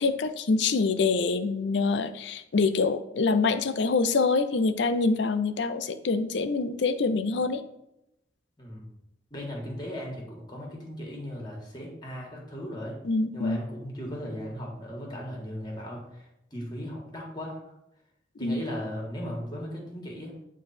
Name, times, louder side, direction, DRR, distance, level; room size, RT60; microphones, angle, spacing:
voice 1, 0.0-7.6 13.0-13.6 18.4-18.6, left 4 dB, 70° left, 11 dB, 0.5 m, -25 dB
voice 2, 9.3-13.0 13.3-17.6 18.4-20.3, equal, 25° left, -1 dB, 1.6 m, -37 dB
8.6 x 3.1 x 4.2 m, 0.85 s
head